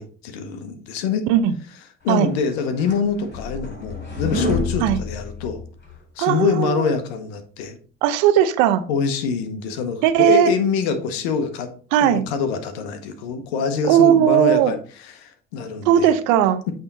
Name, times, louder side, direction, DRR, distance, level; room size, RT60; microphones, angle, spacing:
voice 1, 0.0-1.3 2.0-5.6 6.2-7.8 8.9-11.7 12.0-16.1, left 6 dB, 90° left, 9 dB, 1.0 m, -25 dB
sound 1, 2.3-6.0, left 3 dB, 35° left, 3.6 m, -28 dB
voice 2, 6.2-6.9 8.0-8.8 10.0-10.5 11.9-12.2 13.9-14.7 15.9-16.6, right 10 dB, 85° right, 12 dB, 0.7 m, -17 dB
8.6 x 3.6 x 4.0 m, 0.40 s
hypercardioid pair, 55°, 30 cm